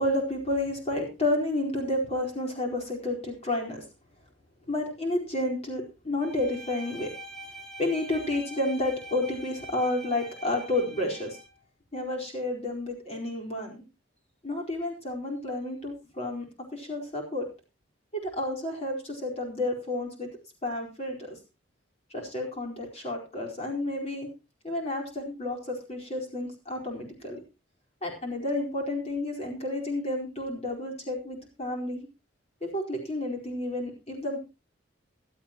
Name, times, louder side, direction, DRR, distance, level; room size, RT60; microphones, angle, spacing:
voice 1, 0.0-3.8 4.7-7.1 7.8-11.4 11.9-13.8 14.4-16.5 16.7-17.4 18.1-20.3 20.6-21.4 22.1-24.3 24.6-27.4 28.0-32.1 32.6-34.4, left 1 dB, 35° left, 0 dB, 4.5 m, -31 dB
Bowed string instrument, 6.2-11.6, right 1 dB, ahead, 2.5 m, -44 dB
16.0 x 12.5 x 3.0 m, 0.29 s
head